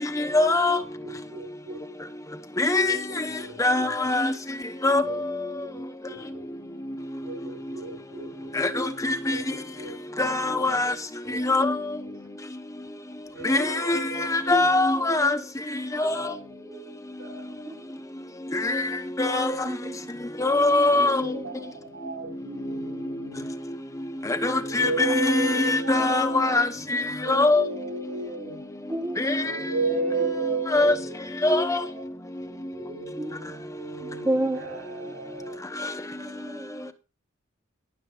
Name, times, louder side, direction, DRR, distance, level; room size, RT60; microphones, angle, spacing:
voice 1, 0.1-0.8 2.6-3.3 3.6-4.3 4.8-5.4 8.5-9.5 10.2-10.9 11.3-11.8 13.4-15.4 15.9-16.3 18.5-19.6 20.4-21.4 22.7-22.8 24.2-27.6 29.2-29.5 30.7-30.9 31.4-31.8 35.8-35.9, left 2 dB, 15° left, 0.9 m, -23 dB
voice 2, 1.0-1.8 2.8-3.9 5.0-5.2 5.6-5.8 6.1-6.5 7.2-8.5 9.3-10.2 11.2-11.5 12.0-12.1 13.3-14.7 16.1-17.6 20.4-23.5 24.6-28.7 29.4-31.1 31.8-32.1 32.4-35.6, right 3 dB, 85° right, 6.7 m, -35 dB
voice 3, 19.6-20.1 21.3-21.4 28.9-29.2 33.2-33.3 34.0-34.8 36.1-36.9, right 1 dB, 15° right, 0.6 m, -31 dB
19.0 x 7.2 x 2.4 m
head